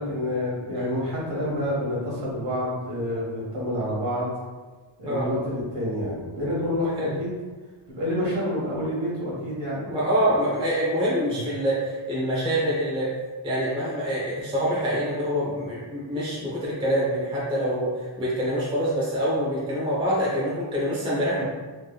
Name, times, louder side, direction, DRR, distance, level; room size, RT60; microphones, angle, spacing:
voice 1, 0.0-4.3 5.0-7.3 7.9-9.9 11.2-11.4, left 1 dB, 60° right, -7 dB, 1.4 m, -28 dB
voice 2, 9.9-13.1 13.4-21.4, equal, 10° right, -7 dB, 0.7 m, -25 dB
3.4 x 3.1 x 2.2 m, 1.3 s
wide cardioid pair, 170°, 49 cm